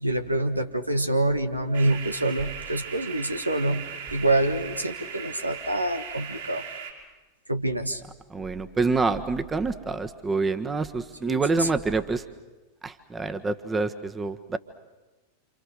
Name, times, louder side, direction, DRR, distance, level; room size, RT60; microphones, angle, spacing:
voice 1, 0.0-3.8 4.1-6.7 7.5-8.0 11.2-11.7, right 1 dB, 90° right, 7 dB, 1.5 m, -26 dB
sound 1, 1.7-6.9, right 7 dB, 60° right, 5.2 m, -38 dB
voice 2, 8.3-12.2 12.8-14.6, right 3 dB, 15° right, 9 dB, 1.5 m, -27 dB
28.5 x 27.5 x 6.7 m, 1.2 s
figure-of-eight pair, 90°, 0 cm